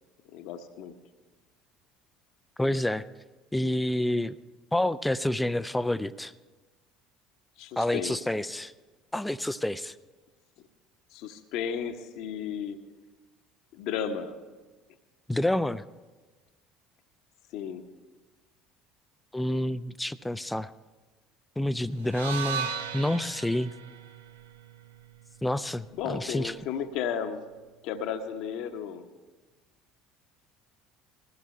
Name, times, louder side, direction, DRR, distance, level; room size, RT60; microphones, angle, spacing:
voice 1, 0.3-0.9 7.6-8.5 11.1-12.8 13.7-14.4 17.5-17.8 25.9-27.4 27.8-29.1, left 8 dB, 60° left, 7 dB, 1.1 m, -34 dB
voice 2, 2.6-3.0 3.5-4.3 4.7-6.3 7.8-8.7 9.1-9.9 15.3-15.8 19.3-20.7 21.6-23.7 25.4-26.5, left 1 dB, 5° left, 16 dB, 0.5 m, -28 dB
sound 1, 22.0-26.2, right 6 dB, 75° right, 0.7 m, -37 dB
20.5 x 15.5 x 3.3 m, 1.3 s
figure-of-eight pair, 60°, 0 cm